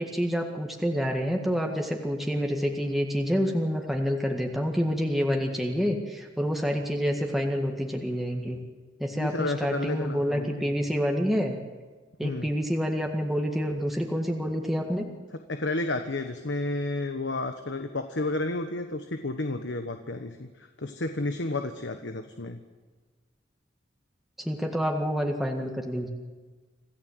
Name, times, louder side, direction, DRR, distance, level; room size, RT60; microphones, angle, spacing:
voice 1, 0.0-8.6 9.0-11.6 12.2-15.1 24.4-26.1, equal, ahead, 1 dB, 1.8 m, -28 dB
voice 2, 9.1-10.7 12.2-12.5 15.5-22.6, left 2 dB, 75° left, 7 dB, 1.3 m, -31 dB
26.5 x 15.0 x 7.9 m, 1.4 s
head